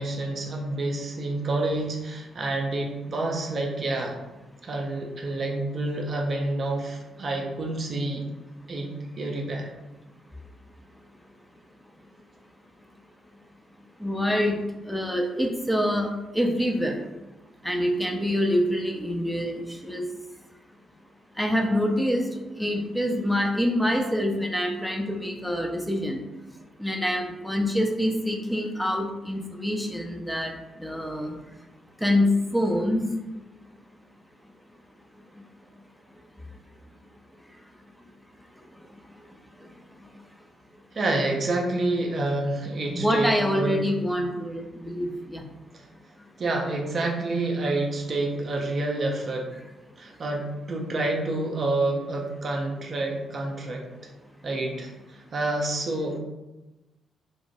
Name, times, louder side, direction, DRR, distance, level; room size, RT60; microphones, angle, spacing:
voice 1, 0.0-4.2 4.6-8.2 8.7-8.9 9.2-9.7 40.9-43.8 46.4-49.5 50.0-53.8 54.4-56.2, right 2 dB, 50° right, 0 dB, 0.5 m, -28 dB
voice 2, 14.0-14.6 14.9-16.1 16.3-17.0 17.6-20.0 21.4-22.2 22.6-26.2 26.8-30.5 30.8-31.3 32.0-33.0 42.9-45.4, equal, ahead, 1 dB, 0.5 m, -25 dB
2.9 x 2.1 x 2.9 m, 1.0 s
hypercardioid pair, 40°, 0 cm